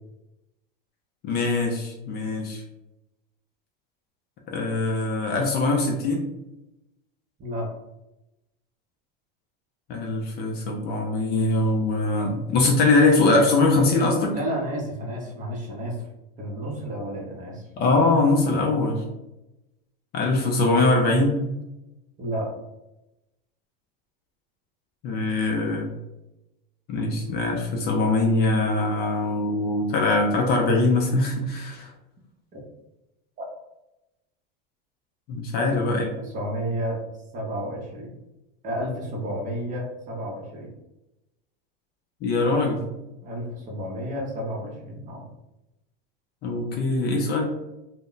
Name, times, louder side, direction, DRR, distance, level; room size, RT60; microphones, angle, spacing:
voice 1, 1.2-2.6 4.5-6.2 9.9-14.4 17.8-19.0 20.1-21.5 25.0-25.9 26.9-31.9 35.3-36.1 42.2-42.8 46.4-47.4, left 2 dB, 35° left, 1 dB, 0.4 m, -22 dB
voice 2, 14.3-16.1 16.4-17.7 22.2-22.5 32.5-32.6 33.4-33.5 35.6-35.8 36.2-37.0 37.3-38.2 38.6-40.7 43.2-45.2, equal, 25° right, -1 dB, 0.7 m, -31 dB
2.1 x 2.1 x 3.8 m, 0.96 s
supercardioid pair, 130°, 29 cm